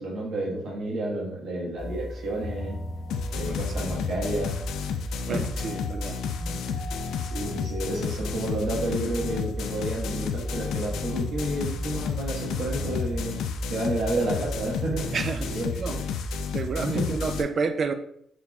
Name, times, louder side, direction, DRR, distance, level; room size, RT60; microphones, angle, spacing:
voice 1, 0.0-2.8 3.3-4.6 5.3-5.7 7.2-13.4 13.7-15.2 15.5-16.0 16.8-17.1, right 1 dB, 70° right, -2 dB, 1.3 m, -30 dB
sound 1, 1.8-13.2, left 1 dB, 50° left, 1.2 m, -41 dB
sound 2, 3.1-17.4, left 4 dB, 90° left, 0.3 m, -31 dB
voice 2, 5.2-6.2 15.1-16.0 16.5-17.9, right 4 dB, 40° right, 8 dB, 0.4 m, -30 dB
4.1 x 3.4 x 2.3 m, 0.69 s
cardioid pair, 140°, 0 cm